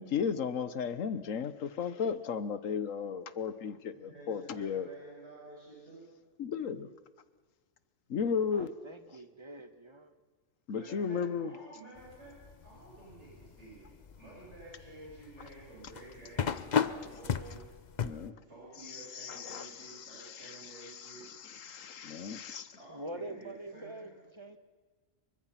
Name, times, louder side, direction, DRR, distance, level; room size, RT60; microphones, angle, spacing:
voice 1, 0.0-4.9 6.4-6.9 8.1-8.7 10.7-11.5 18.0-18.3 18.9-22.8, left 6 dB, 80° left, 13 dB, 1.5 m, -35 dB
voice 2, 3.9-6.1 10.7-12.4 12.6-17.6 18.4-21.2 22.8-24.1, right 2 dB, 60° right, -6 dB, 8.0 m, -51 dB
voice 3, 8.5-10.1 22.9-24.6, right 1 dB, 20° right, 8 dB, 1.4 m, -45 dB
sound 1, 12.0-18.3, left 7 dB, 40° left, 0.8 m, -36 dB
28.0 x 24.0 x 5.9 m, 1.4 s
omnidirectional pair, 1.3 m